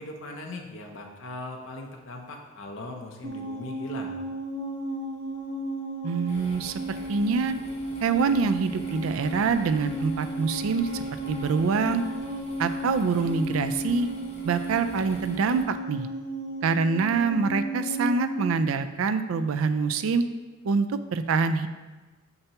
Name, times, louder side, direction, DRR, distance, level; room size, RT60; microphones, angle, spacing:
voice 1, 0.0-4.2, left 2 dB, 65° left, 1 dB, 0.7 m, -39 dB
sound 1, 3.2-18.6, right 1 dB, 60° right, 0.9 m, -34 dB
voice 2, 6.0-6.8 7.1-7.6 8.0-12.0 12.6-14.1 14.4-16.1 16.6-20.2 20.6-21.7, right 5 dB, 80° right, 10 dB, 0.4 m, -25 dB
sound 2, 6.3-15.6, left 1 dB, 30° left, 0.9 m, -46 dB
6.6 x 5.6 x 2.9 m, 1.2 s
head